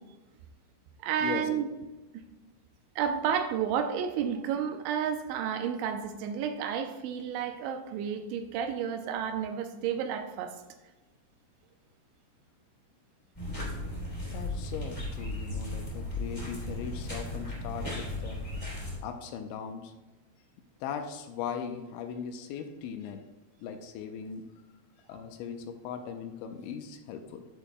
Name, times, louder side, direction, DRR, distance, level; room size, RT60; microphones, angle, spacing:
voice 1, 1.0-1.7 3.0-10.6, right 8 dB, 85° right, 6 dB, 2.9 m, -31 dB
sound 1, 13.3-19.0, left 1 dB, 15° left, 1.3 m, -36 dB
voice 2, 14.2-18.4 19.0-19.9 20.8-23.2 23.6-24.4 25.1-27.5, left 7 dB, 80° left, 6 dB, 2.9 m, -39 dB
11.0 x 8.6 x 2.2 m, 1.1 s
omnidirectional pair, 5.5 m